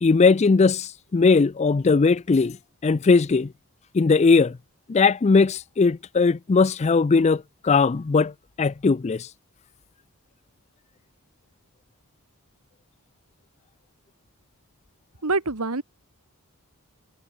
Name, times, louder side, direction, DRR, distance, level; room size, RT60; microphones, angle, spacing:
voice 1, 0.0-2.6 2.8-3.5 3.9-4.6 4.9-8.3 8.6-9.3, left 4 dB, 30° left, 0.4 m, -19 dB
voice 2, 15.2-15.8, right 3 dB, 80° right, 1.7 m, -25 dB
head